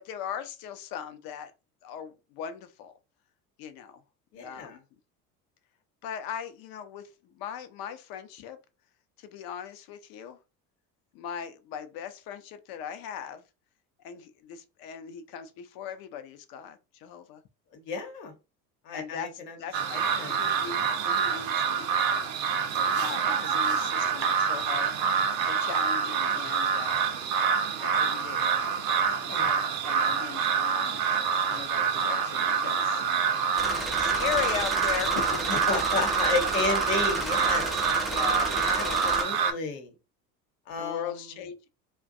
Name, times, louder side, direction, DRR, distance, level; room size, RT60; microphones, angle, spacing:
voice 1, 0.0-1.5 1.8-2.9 3.6-4.0 4.4-4.8 6.0-8.6 9.2-10.4 11.1-13.4 14.0-17.4 18.9-19.3 19.6-21.9 22.7-25.0 25.4-27.0 27.8-28.5 29.2-31.0 31.5-33.0 33.9-35.6 38.1-39.6 40.8-41.7, left 8 dB, 50° left, 0.6 m, -39 dB
voice 2, 4.3-4.8 17.7-18.3 18.8-19.6 19.9-20.4 29.0-29.6 35.5-37.7 38.6-39.9 40.7-41.2, left 4 dB, 70° left, 0.9 m, -33 dB
sound 1, 19.7-39.5, right 6 dB, 45° right, 0.6 m, -26 dB
sound 2, 33.6-39.2, equal, ahead, 0.4 m, -33 dB
2.5 x 2.2 x 2.5 m
hypercardioid pair, 75°, 48 cm